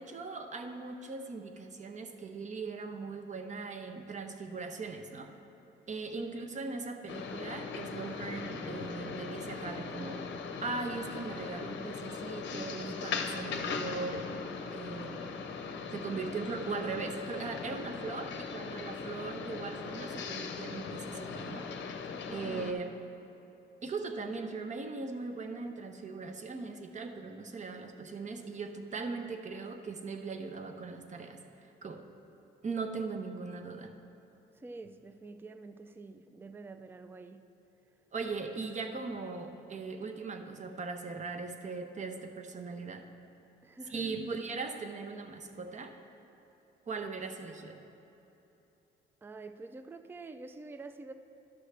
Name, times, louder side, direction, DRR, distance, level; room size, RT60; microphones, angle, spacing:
voice 1, 0.0-5.3 5.9-10.2 10.6-14.3 14.7-15.4 15.9-21.6 22.3-22.9 23.8-31.4 31.8-32.0 32.6-33.9 38.1-43.1 43.9-45.9 46.9-47.8, right 4 dB, 35° right, 6 dB, 0.7 m, -39 dB
voice 2, 6.1-6.5 22.2-22.7 34.5-37.4 43.6-44.1 49.2-51.1, right 3 dB, 10° right, 9 dB, 0.3 m, -47 dB
sound 1, 7.1-22.7, left 5 dB, 65° left, 0.6 m, -39 dB
11.5 x 6.3 x 3.3 m, 3.0 s
cardioid pair, 90°, 20 cm